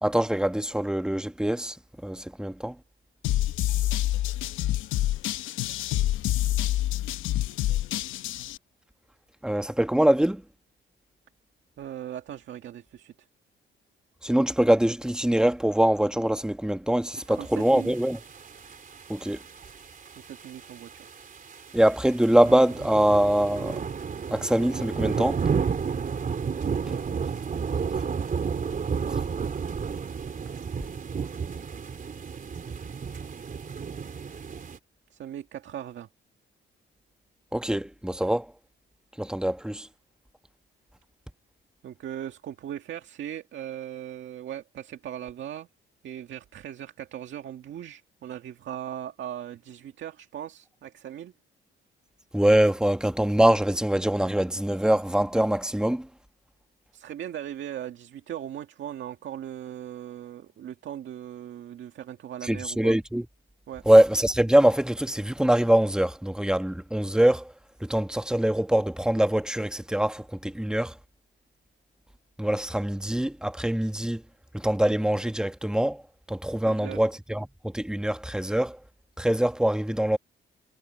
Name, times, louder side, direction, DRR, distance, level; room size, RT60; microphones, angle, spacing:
voice 1, 0.0-1.8 2.0-2.7 9.4-10.4 14.2-18.2 19.1-19.4 21.7-23.8 24.3-25.4 37.5-38.5 39.2-39.9 52.3-56.1 62.4-63.2 63.8-67.5 67.8-70.9 72.4-74.2 74.5-76.0 76.3-78.8 79.2-80.2, right 1 dB, 5° right, 1.5 m, -23 dB
sound 1, 3.2-8.6, left 14 dB, 90° left, 0.9 m, -27 dB
voice 2, 11.8-13.1 17.3-17.9 20.2-21.1 26.9-27.7 28.0-28.3 28.6-29.2 35.1-36.1 41.8-45.7 46.0-51.3 56.9-62.9 63.7-63.8 76.7-77.0, right 10 dB, 70° right, 2.0 m, -39 dB
sound 2, 17.6-34.8, right 6 dB, 45° right, 3.6 m, -32 dB
cardioid pair, 90°, 20 cm